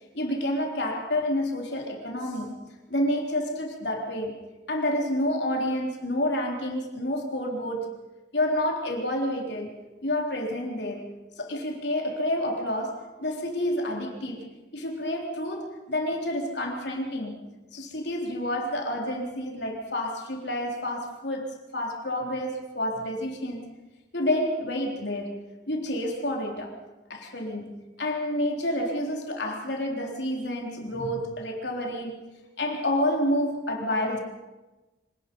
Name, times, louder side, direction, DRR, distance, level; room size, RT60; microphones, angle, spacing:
voice 1, 0.1-2.5 2.9-4.4 4.7-8.0 8.3-9.7 10.0-14.4 14.7-23.6 24.1-26.8 27.1-32.2 32.6-34.2, left 1 dB, 65° left, 1 dB, 3.8 m, -29 dB
25.5 x 18.5 x 5.5 m, 1.1 s
head